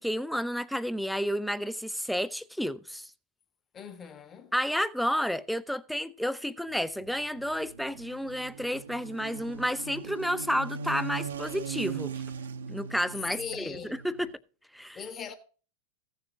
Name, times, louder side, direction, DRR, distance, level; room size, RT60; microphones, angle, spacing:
voice 1, 0.0-3.1 4.5-12.1 12.7-14.3 14.7-15.0, equal, ahead, 0.5 m, -31 dB
voice 2, 3.7-4.5 13.4-14.0 14.9-15.3, left 7 dB, 25° left, 1.3 m, -40 dB
sound 1, 6.7-14.3, right 6 dB, 70° right, 0.8 m, -40 dB
15.5 x 6.7 x 3.7 m
figure-of-eight pair, 90°, 0 cm